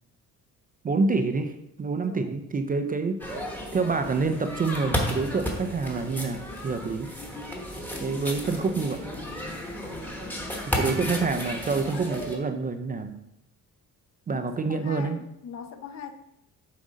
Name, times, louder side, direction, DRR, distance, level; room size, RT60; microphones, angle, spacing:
voice 1, 0.8-3.2 3.7-7.1 8.0-9.1 10.6-13.2 14.3-15.2, right 4 dB, 25° right, 8 dB, 0.4 m, -27 dB
voice 2, 2.0-2.3 14.3-16.1, left 7 dB, 50° left, 8 dB, 0.7 m, -41 dB
sound 1, 3.2-12.4, equal, 5° left, 1.1 m, -33 dB
7.3 x 3.8 x 5.1 m, 0.83 s
cardioid pair, 135°, 34 cm